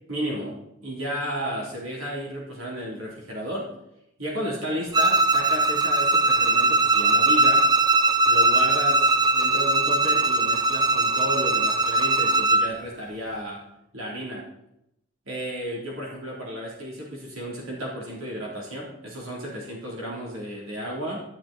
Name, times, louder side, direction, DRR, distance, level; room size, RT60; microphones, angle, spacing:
voice 1, 0.1-3.7 4.2-7.7 8.3-13.6 13.9-14.5 15.3-21.2, equal, 80° right, -3 dB, 3.6 m, -33 dB
Bowed string instrument, 4.9-12.7, right 2 dB, 20° right, 0.8 m, -20 dB
12.5 x 12.0 x 4.4 m, 0.81 s
head